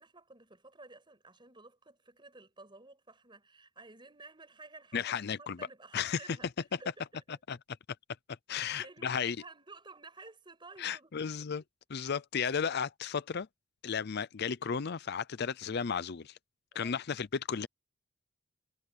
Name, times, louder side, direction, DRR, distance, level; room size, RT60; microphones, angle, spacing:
voice 1, 0.0-6.5 6.8-7.2 8.5-11.3 16.7-17.0, right 3 dB, 25° right, 6.2 m, -53 dB
voice 2, 4.9-5.6 5.9-6.4 7.5-7.6 8.5-9.4 10.8-11.6 11.9-13.5 13.8-16.4 16.7-17.7, left 6 dB, 55° left, 0.5 m, -34 dB
head